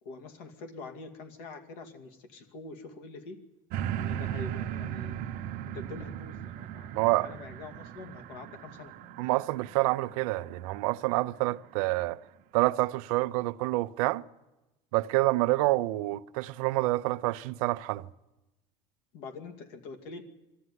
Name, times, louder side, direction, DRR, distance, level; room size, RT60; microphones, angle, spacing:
voice 1, 0.0-3.4 3.9-5.2 5.6-8.9 19.1-20.2, left 4 dB, 75° left, 2.4 m, -45 dB
sound 1, 3.7-11.1 11.6-11.7, right 10 dB, 60° right, 1.0 m, -38 dB
voice 2, 6.9-7.3 9.2-12.2 12.5-14.2 14.9-18.1, right 20 dB, 90° right, 0.6 m, -27 dB
21.5 x 14.0 x 9.6 m
cardioid pair, 135°, 17 cm